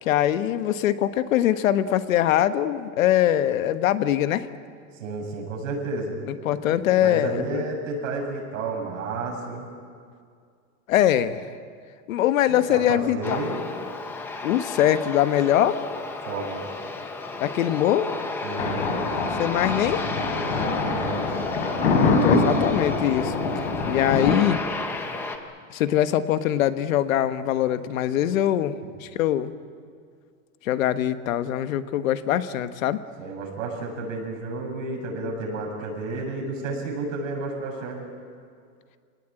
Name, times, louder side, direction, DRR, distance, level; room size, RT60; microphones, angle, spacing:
voice 1, 0.0-4.5 6.3-7.6 10.9-11.5 12.1-13.4 14.4-15.8 17.4-18.1 19.4-20.0 21.9-23.3 23.9-24.6 25.7-28.7 29.0-29.5 30.6-33.0, left 12 dB, 70° left, 11 dB, 1.3 m, -22 dB
voice 2, 5.0-6.2 6.6-9.7 12.5-13.6 16.2-16.6 18.4-18.8 20.9-21.3 28.8-28.9 33.2-38.1, right 3 dB, 70° right, 1 dB, 7.6 m, -31 dB
Aircraft, 13.2-25.4, left 3 dB, 5° left, 0.6 m, -32 dB
Thunder, 18.6-24.3, left 3 dB, 55° left, 4.6 m, -25 dB
27.0 x 18.5 x 8.9 m, 2.2 s
supercardioid pair, 180°, 41 cm